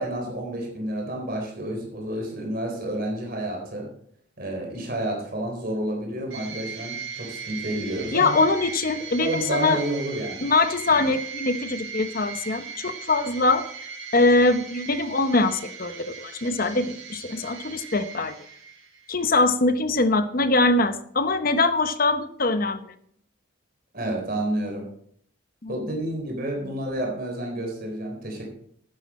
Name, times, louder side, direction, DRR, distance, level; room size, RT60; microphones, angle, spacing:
voice 1, 0.0-3.9 4.4-8.4 9.2-10.5 10.9-11.0 23.9-24.9 25.7-28.4, right 1 dB, 45° right, 0 dB, 4.0 m, -30 dB
sound 1, 6.3-19.1, right 5 dB, 90° right, 4.6 m, -38 dB
voice 2, 8.1-9.8 10.4-13.6 14.1-18.3 19.1-22.9 25.6-25.7, left 2 dB, 45° left, 10 dB, 0.9 m, -23 dB
12.0 x 9.8 x 4.3 m, 0.64 s
head